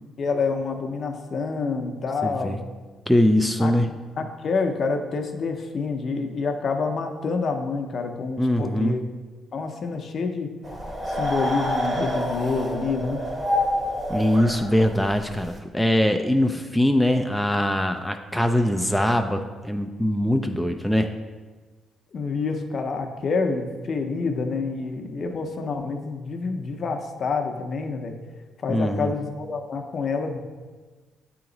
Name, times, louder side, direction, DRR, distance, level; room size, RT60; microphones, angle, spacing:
voice 1, 0.2-2.6 3.6-3.7 4.2-9.0 9.5-10.5 11.1-13.2 22.1-28.1 28.6-30.4, left 4 dB, 50° left, 4 dB, 0.6 m, -27 dB
voice 2, 2.2-2.6 3.1-3.9 8.4-9.0 14.1-21.1 28.7-29.1, left 1 dB, ahead, 5 dB, 0.3 m, -22 dB
sound 1, 10.6-15.5, left 1 dB, 25° right, 1.0 m, -27 dB
8.3 x 2.9 x 3.9 m, 1.3 s
cardioid pair, 90°, 0 cm